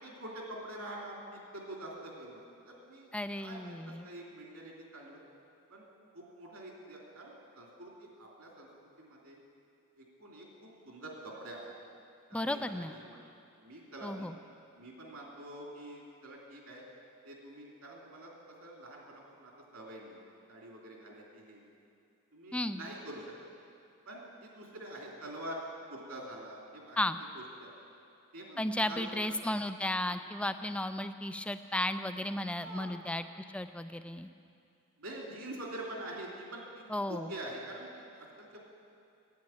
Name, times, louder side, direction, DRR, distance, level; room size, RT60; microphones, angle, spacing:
voice 1, 0.0-1.2 1.5-3.1 3.3-5.2 5.7-5.9 6.1-8.7 9.0-9.4 10.0-11.7 12.3-13.3 13.6-14.3 14.8-16.8 17.2-18.3 18.6-20.2 20.5-21.6 22.3-23.3 24.1-25.6 25.9-27.0 27.3-27.8 28.3-29.4 30.1-30.2 32.6-32.9 35.0-38.6, right 1 dB, 75° right, -2 dB, 2.9 m, -46 dB
voice 2, 3.1-4.1 12.3-13.0 14.0-14.3 22.5-22.8 27.0-27.2 28.6-34.3 36.9-37.3, left 1 dB, 5° left, 10 dB, 0.3 m, -34 dB
10.5 x 9.0 x 9.0 m, 2.5 s
head